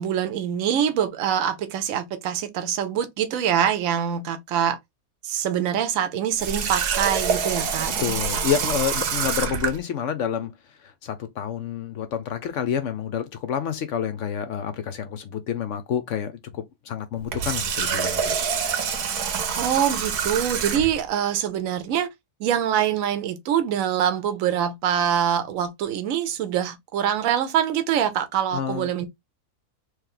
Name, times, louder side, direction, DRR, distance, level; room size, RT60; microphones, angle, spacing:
voice 1, 0.0-4.8 5.2-7.9 19.5-22.1 22.4-29.1, right 9 dB, 65° right, 1.0 m, -24 dB
Water tap faucet, 6.4-9.8 17.2-21.0, right 6 dB, 80° right, 1.3 m, -26 dB
voice 2, 8.0-18.4 28.5-28.9, left 8 dB, 65° left, 0.8 m, -28 dB
3.1 x 3.0 x 3.7 m
omnidirectional pair, 1.6 m